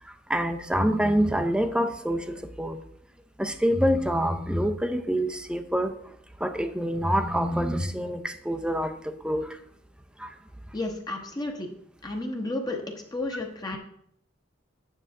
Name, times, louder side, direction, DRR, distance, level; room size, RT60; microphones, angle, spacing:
voice 1, 0.0-2.8 3.4-5.9 6.4-9.6 10.2-10.3, equal, 5° right, 8 dB, 0.5 m, -26 dB
voice 2, 10.7-11.7 12.0-12.8 13.1-13.8, left 2 dB, 20° left, 2 dB, 0.9 m, -32 dB
9.2 x 5.6 x 3.7 m, 0.69 s
head